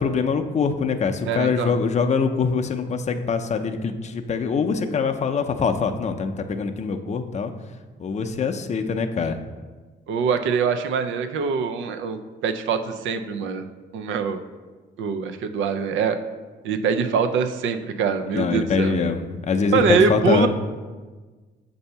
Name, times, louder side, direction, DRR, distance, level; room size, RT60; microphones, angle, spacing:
voice 1, 0.0-7.5 8.0-9.4 18.3-20.5, left 5 dB, 35° left, 6 dB, 0.5 m, -23 dB
voice 2, 1.3-1.8 9.2-9.4 10.1-13.7 13.9-14.4 15.0-16.2 16.6-19.0 19.7-20.5, right 6 dB, 85° right, 8 dB, 0.5 m, -23 dB
6.7 x 2.7 x 5.4 m, 1.3 s
cardioid pair, 80°, 19 cm